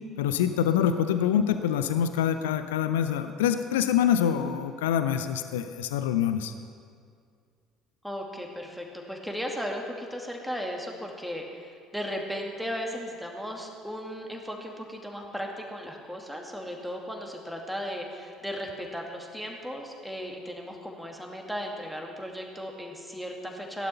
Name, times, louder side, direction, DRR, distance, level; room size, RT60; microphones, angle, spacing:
voice 1, 0.2-6.5, left 9 dB, 70° left, 10 dB, 0.6 m, -25 dB
voice 2, 8.0-23.9, equal, ahead, 0 dB, 2.4 m, -36 dB
16.5 x 11.5 x 5.7 m, 2.2 s
figure-of-eight pair, 55°, 0 cm